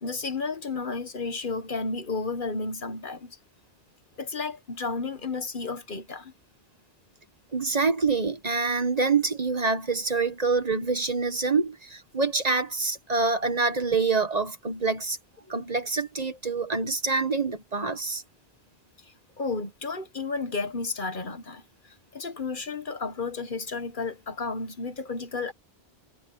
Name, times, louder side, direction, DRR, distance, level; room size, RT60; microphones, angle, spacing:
voice 1, 0.0-3.4 4.2-6.3 19.4-21.6 22.1-25.5, left 4 dB, 55° left, 1.4 m, -32 dB
voice 2, 7.5-15.2 15.5-18.2, right 4 dB, 40° right, 1.4 m, -26 dB
omnidirectional pair, 1.0 m